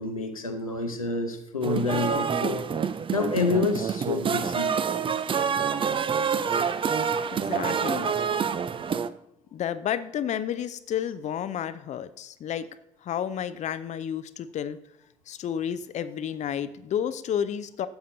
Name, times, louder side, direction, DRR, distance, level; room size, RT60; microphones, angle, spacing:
voice 1, 0.0-2.7 3.1-4.7, left 4 dB, 90° left, 4 dB, 0.7 m, -28 dB
sound 1, 1.6-9.1, right 6 dB, 30° right, 0.5 m, -27 dB
voice 2, 7.3-8.1 9.5-12.7 13.0-14.8 15.3-17.9, left 9 dB, 45° left, 13 dB, 0.6 m, -31 dB
12.5 x 8.0 x 2.7 m, 0.82 s
figure-of-eight pair, 45°, 17 cm